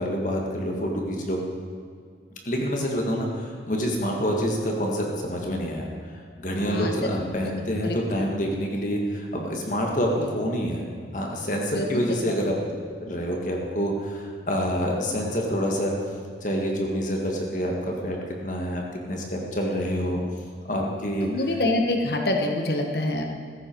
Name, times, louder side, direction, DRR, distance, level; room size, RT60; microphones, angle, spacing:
voice 1, 0.0-1.4 2.5-5.9 6.4-10.9 11.1-12.5 13.0-15.9 16.4-20.2 20.6-21.5, equal, 45° left, 0 dB, 1.9 m, -27 dB
voice 2, 6.5-6.9 7.8-8.0 11.7-11.9 21.2-23.2, left 2 dB, 60° left, 3 dB, 1.5 m, -25 dB
15.5 x 14.0 x 4.7 m, 2.1 s
head